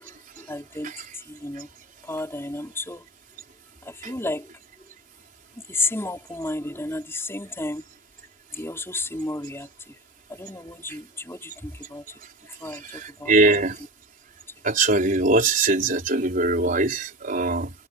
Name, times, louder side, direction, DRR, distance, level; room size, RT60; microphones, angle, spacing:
voice 1, 0.0-1.7 2.0-3.1 3.8-4.5 5.7-7.8 8.5-10.0 10.3-13.6, left 2 dB, 15° left, 3.7 m, -32 dB
voice 2, 12.7-13.8 14.6-17.7, right 2 dB, 45° right, 4.1 m, -22 dB
head